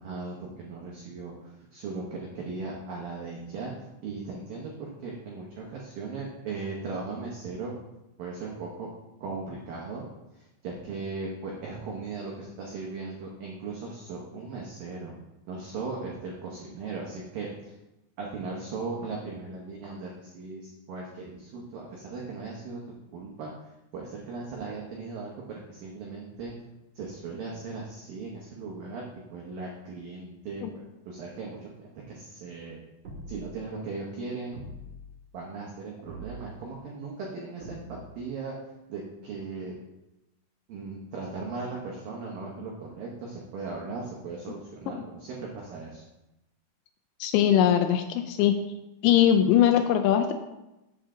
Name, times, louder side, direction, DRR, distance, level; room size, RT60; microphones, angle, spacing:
voice 1, 0.0-3.7 4.0-7.7 8.2-8.9 9.2-10.1 10.3-15.1 15.5-17.8 18.2-22.8 23.1-23.5 23.9-26.5 27.0-29.0 29.3-32.8 33.3-34.6 35.3-38.5 38.9-39.8 40.7-46.0, right 4 dB, 90° right, -2 dB, 2.0 m, -38 dB
sound 1, 33.0-33.7 34.5-35.1 36.1-36.7 37.6-38.2, right 1 dB, 60° right, 1.6 m, -43 dB
voice 2, 47.2-48.6 49.0-50.3, left 10 dB, 85° left, 7 dB, 2.6 m, -21 dB
8.0 x 8.0 x 3.7 m, 0.98 s
omnidirectional pair, 5.7 m